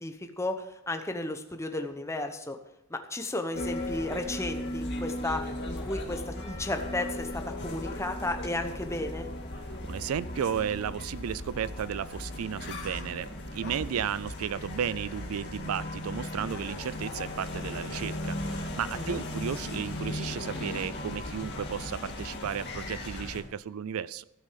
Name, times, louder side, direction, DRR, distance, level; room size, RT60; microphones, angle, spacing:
voice 1, 0.0-2.6 2.9-9.3 18.9-19.2, left 2 dB, 15° left, 6 dB, 0.9 m, -34 dB
sound 1, 3.5-23.4, left 1 dB, 55° left, 1.9 m, -37 dB
voice 2, 9.8-24.2, right 8 dB, 85° right, 19 dB, 0.4 m, -34 dB
15.5 x 6.2 x 5.8 m, 0.88 s
head